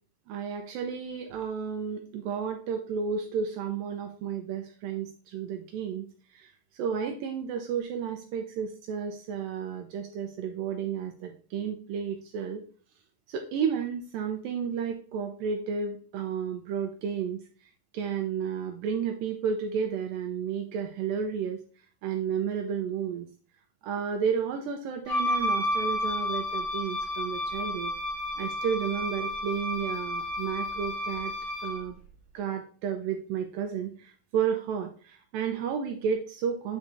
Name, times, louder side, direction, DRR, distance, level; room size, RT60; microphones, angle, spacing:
voice 1, 0.3-6.1 6.3-12.6 13.3-17.4 17.9-21.6 22.0-23.3 23.8-27.9 28.4-31.3 31.6-32.0 32.3-36.8, right 7 dB, 80° right, 4 dB, 2.1 m, -32 dB
Wind instrument woodwind instrument, 25.1-31.8, left 1 dB, 60° left, 1.1 m, -31 dB
8.3 x 4.7 x 2.6 m, 0.41 s
omnidirectional pair, 4.5 m